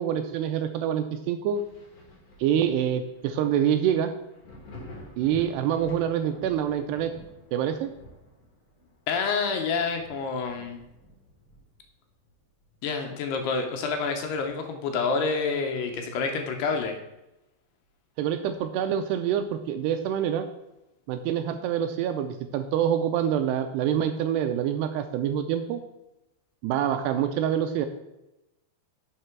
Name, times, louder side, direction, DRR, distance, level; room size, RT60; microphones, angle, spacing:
voice 1, 0.0-1.6 2.4-4.1 5.2-7.1 7.5-7.9 18.2-20.5 21.1-25.8 26.6-27.9, right 9 dB, 85° right, 7 dB, 2.5 m, -26 dB
Thunder, 1.5-12.9 13.3-14.8 15.1-15.2 15.8-17.1 18.5-18.6, left 2 dB, 40° left, 2.8 m, -50 dB
voice 2, 9.1-10.8 12.8-16.9, left 4 dB, 75° left, 4 dB, 2.8 m, -28 dB
10.0 x 6.6 x 4.5 m, 0.94 s
omnidirectional pair, 5.1 m